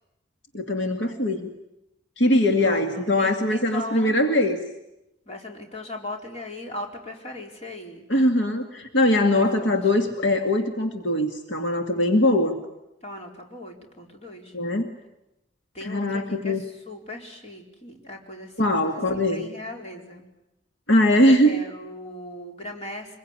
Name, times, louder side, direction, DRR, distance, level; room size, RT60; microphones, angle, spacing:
voice 1, 0.5-1.5 2.2-4.6 8.1-12.6 14.5-14.9 15.8-16.6 18.6-19.5 20.9-21.6, left 1 dB, 70° left, 4 dB, 2.2 m, -21 dB
voice 2, 2.6-4.2 5.3-8.1 9.3-9.8 13.0-14.5 15.7-19.0 19.3-20.2 21.4-23.2, left 1 dB, 35° left, 1 dB, 4.5 m, -38 dB
25.0 x 22.5 x 9.8 m, 0.89 s
head